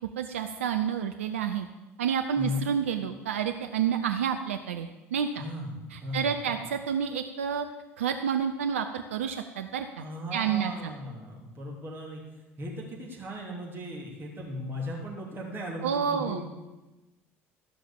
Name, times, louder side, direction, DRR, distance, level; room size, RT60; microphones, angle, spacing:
voice 1, 0.2-1.7 2.0-5.4 5.9-7.7 8.0-10.0 10.3-10.9 15.8-16.4, right 7 dB, 70° right, 6 dB, 0.6 m, -29 dB
voice 2, 5.3-6.6 10.0-12.2 12.6-16.4, left 1 dB, 30° right, -2 dB, 3.1 m, -37 dB
14.0 x 5.8 x 7.1 m, 1.1 s
figure-of-eight pair, 60°, 7 cm